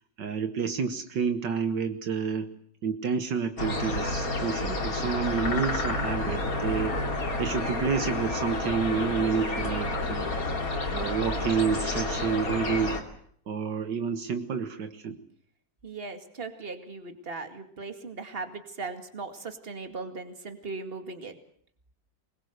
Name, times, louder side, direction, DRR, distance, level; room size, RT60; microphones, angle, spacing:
voice 1, 0.2-2.5 2.8-7.0 7.4-10.3 10.9-13.0 13.5-15.2, right 6 dB, 70° right, 8 dB, 1.9 m, -29 dB
sound 1, 3.6-13.0, left 2 dB, 50° left, 3.2 m, -30 dB
voice 2, 15.8-21.3, right 3 dB, 30° right, 7 dB, 2.4 m, -38 dB
24.0 x 21.0 x 8.0 m, 0.64 s
omnidirectional pair, 2.0 m